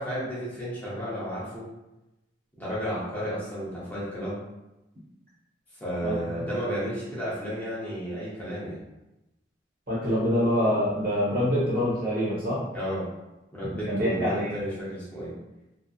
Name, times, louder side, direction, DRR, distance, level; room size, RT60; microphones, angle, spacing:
voice 1, 0.0-1.7 2.6-4.4 5.8-8.8 12.7-13.1 13.5-15.3, equal, 10° left, -9 dB, 0.7 m, -32 dB
voice 2, 9.9-12.6 13.7-14.6, equal, 50° right, -7 dB, 1.1 m, -25 dB
2.7 x 2.3 x 2.3 m, 0.96 s
head